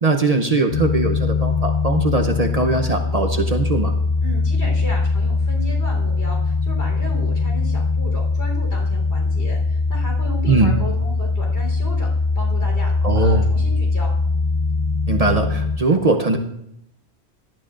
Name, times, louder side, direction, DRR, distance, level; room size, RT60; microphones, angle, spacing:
voice 1, 0.0-3.9 10.5-10.7 13.0-13.5 15.1-16.4, right 3 dB, 40° right, 4 dB, 0.8 m, -20 dB
sound 1, 0.7-15.8, left 3 dB, 55° left, 0.8 m, -21 dB
voice 2, 4.2-12.1 12.3-14.1, equal, 75° left, -1 dB, 4.1 m, -34 dB
18.0 x 12.0 x 2.5 m, 0.77 s
omnidirectional pair, 1.1 m